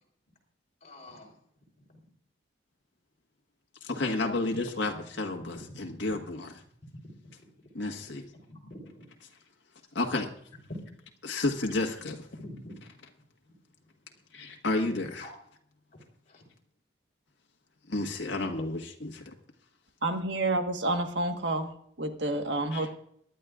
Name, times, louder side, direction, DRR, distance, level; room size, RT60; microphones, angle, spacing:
voice 1, 0.8-1.3 1.9-2.0 4.2-4.3 7.0-7.5 8.5-9.0 12.4-12.8 14.9-15.3 16.3-16.4, left 1 dB, 40° left, -2 dB, 3.9 m, -47 dB
voice 2, 3.8-6.5 7.7-8.2 9.9-10.3 11.2-12.3 14.3-15.3 17.9-19.3 22.7-22.9, left 2 dB, 80° left, 2 dB, 1.5 m, -31 dB
voice 3, 20.0-23.0, right 2 dB, 70° right, 6 dB, 1.5 m, -29 dB
23.5 x 11.0 x 2.5 m, 0.69 s
head